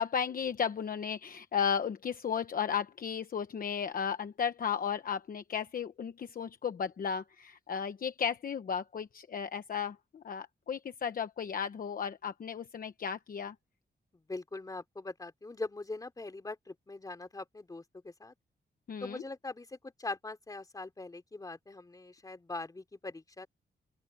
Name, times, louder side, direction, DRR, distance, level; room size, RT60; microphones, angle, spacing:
voice 1, 0.0-13.5 18.9-19.2, left 7 dB, 50° left, 1.0 m, -34 dB
voice 2, 14.1-18.3 19.0-23.5, left 2 dB, 20° left, 3.4 m, -42 dB
open air
wide cardioid pair, 175°, 19 cm